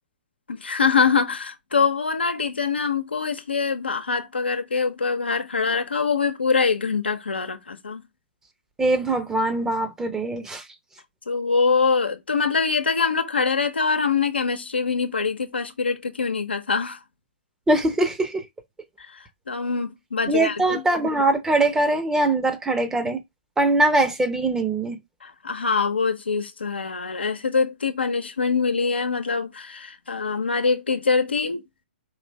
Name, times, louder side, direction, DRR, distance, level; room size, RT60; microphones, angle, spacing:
voice 1, 0.5-8.0 11.3-17.0 19.0-20.8 25.2-31.6, left 5 dB, 90° left, 0.9 m, -24 dB
voice 2, 8.8-10.6 17.7-18.4 20.3-23.2 23.6-25.0, right 2 dB, 10° right, 0.8 m, -22 dB
4.8 x 2.7 x 3.3 m
hypercardioid pair, 130°, 6 cm